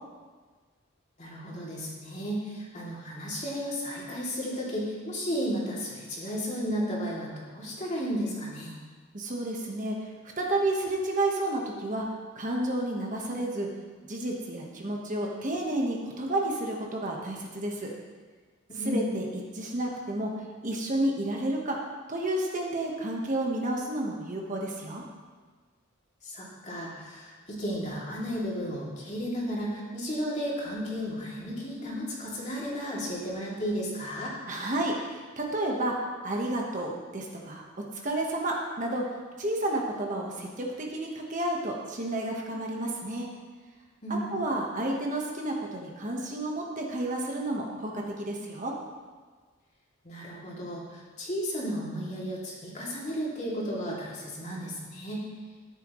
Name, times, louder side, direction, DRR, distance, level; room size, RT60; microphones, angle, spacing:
voice 1, 1.2-8.7 18.7-19.0 26.2-34.3 44.0-44.3 50.0-55.2, equal, 35° left, -5 dB, 2.8 m, -33 dB
voice 2, 9.1-12.0 12.3-13.7 14.1-17.9 18.8-19.3 19.5-20.3 20.6-21.8 22.1-25.0 34.5-35.9 36.2-37.6 38.0-39.0 39.4-43.3 44.3-48.7, right 1 dB, 40° right, -1 dB, 1.3 m, -31 dB
13.5 x 9.8 x 3.1 m, 1.4 s
head